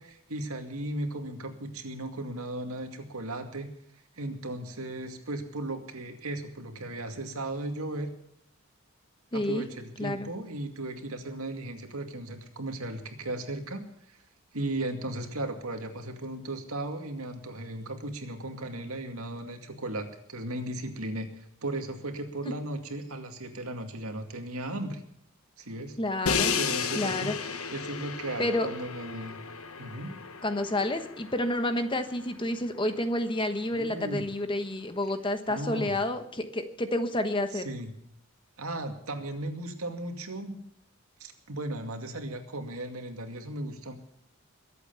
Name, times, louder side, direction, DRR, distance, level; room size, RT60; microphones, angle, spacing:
voice 1, 0.0-3.7 4.2-8.1 9.3-14.2 14.5-25.0 25.6-26.0 26.5-29.4 29.8-30.2 33.7-34.3 35.5-36.0 37.5-37.9 38.6-40.6 41.2-43.9, right 1 dB, 85° right, 5 dB, 2.3 m, -36 dB
voice 2, 9.3-9.7 10.0-10.3 26.0-26.6 27.0-27.3 28.4-28.7 30.4-37.7, left 1 dB, 25° left, 8 dB, 1.2 m, -29 dB
Crash cymbal, 26.3-32.2, left 6 dB, 85° left, 1.3 m, -33 dB
22.0 x 8.3 x 7.0 m, 0.72 s
head